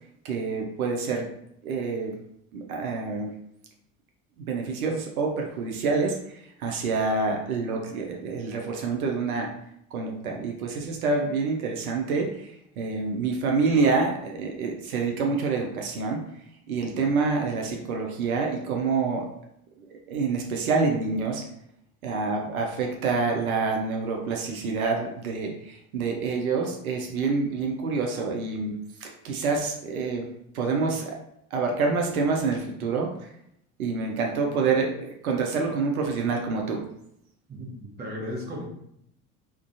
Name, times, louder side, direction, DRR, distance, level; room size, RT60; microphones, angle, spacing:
voice 1, 0.2-1.3 1.6-2.2 2.5-3.3 4.5-9.5 9.9-16.2 16.7-19.3 20.1-21.4 22.0-28.7 29.0-30.3 30.5-31.2 31.5-33.3 33.8-36.8, right 4 dB, 75° right, 1 dB, 0.5 m, -27 dB
voice 2, 37.5-38.6, left 1 dB, 25° right, -2 dB, 0.8 m, -35 dB
2.4 x 2.2 x 2.5 m, 0.74 s
figure-of-eight pair, 70°, 43 cm